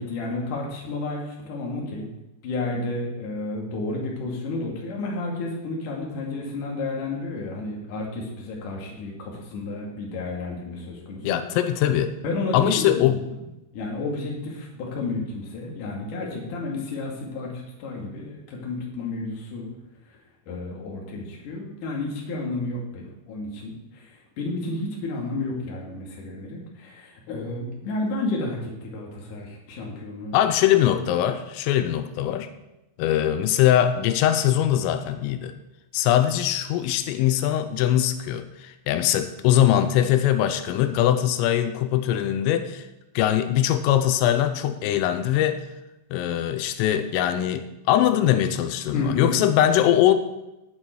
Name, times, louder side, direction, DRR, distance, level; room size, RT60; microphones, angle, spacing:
voice 1, 0.0-2.1 2.4-11.4 12.2-13.2 13.7-17.5 17.8-19.7 20.5-30.3 48.9-49.4, left 2 dB, 50° left, -1 dB, 3.1 m, -31 dB
voice 2, 11.2-12.1 12.5-13.2 30.3-32.5 33.0-35.5 35.9-42.9 43.2-45.6 46.1-50.1, left 11 dB, 90° left, 9 dB, 3.3 m, -21 dB
18.5 x 6.2 x 4.5 m, 0.96 s
omnidirectional pair, 5.8 m